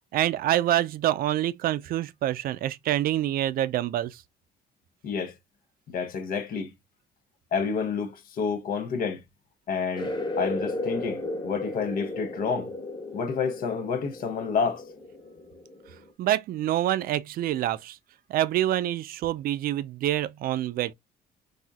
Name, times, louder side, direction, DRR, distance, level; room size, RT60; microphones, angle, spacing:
voice 1, 0.1-4.1 16.2-17.9 18.3-20.9, right 13 dB, 60° right, 0.4 m, -26 dB
voice 2, 5.0-5.3 5.9-6.7 7.5-9.2 9.7-12.7 13.1-14.8, left 5 dB, 55° left, 0.7 m, -29 dB
sound 1, 9.9-16.1, left 2 dB, 25° left, 1.2 m, -35 dB
4.1 x 2.7 x 2.3 m
cardioid pair, 110°, 17 cm